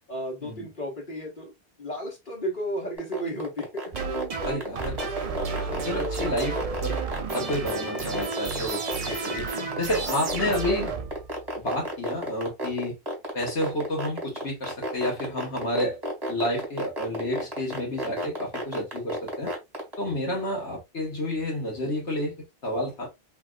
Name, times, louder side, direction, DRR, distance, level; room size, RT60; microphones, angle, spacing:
voice 1, 0.1-1.5 1.8-3.8 10.1-10.3 10.6-10.7, equal, 45° left, 1.5 m, -33 dB
sound 1, 3.0-19.9, equal, 20° right, 1.3 m, -32 dB
sound 2, 3.9-11.7, right 4 dB, 45° right, 0.5 m, -32 dB
voice 2, 4.4-7.0 7.3-9.5 9.8-10.9 11.6-13.0 13.3-16.0 16.3-19.5 20.0-22.4 22.6-23.1, left 1 dB, 75° left, 1.8 m, -30 dB
3.5 x 2.9 x 2.3 m
omnidirectional pair, 1.2 m